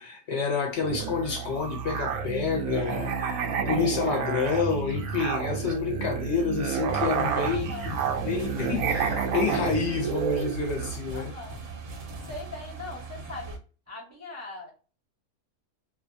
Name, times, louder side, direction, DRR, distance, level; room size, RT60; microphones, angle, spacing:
voice 1, 0.0-11.3, left 5 dB, 60° left, 0.8 m, -29 dB
Musical instrument, 0.8-11.0, right 6 dB, 85° right, 1.1 m, -30 dB
sound 1, 6.9-13.6, right 4 dB, 65° right, 1.0 m, -40 dB
voice 2, 7.5-7.9 11.1-11.6 12.3-13.6 13.9-14.7, left 3 dB, 20° right, 0.4 m, -40 dB
2.7 x 2.2 x 2.5 m
omnidirectional pair, 1.5 m